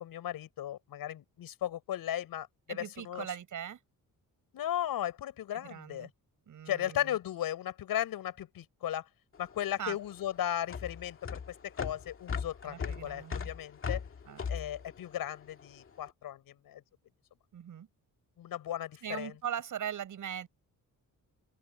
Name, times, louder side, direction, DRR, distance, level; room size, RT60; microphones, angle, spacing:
voice 1, 0.0-3.3 4.5-6.1 6.7-9.1 9.4-14.0 14.5-16.8 18.4-19.3, left 11 dB, 85° left, 6.7 m, -36 dB
voice 2, 2.7-3.8 5.5-6.1 6.5-7.2 9.8-10.0 12.6-13.5 14.3-14.4 17.5-17.9 19.0-20.5, right 9 dB, 60° right, 7.8 m, -40 dB
sound 1, 9.3-15.9, left 6 dB, 35° left, 2.2 m, -39 dB
open air
wide cardioid pair, 155°, 34 cm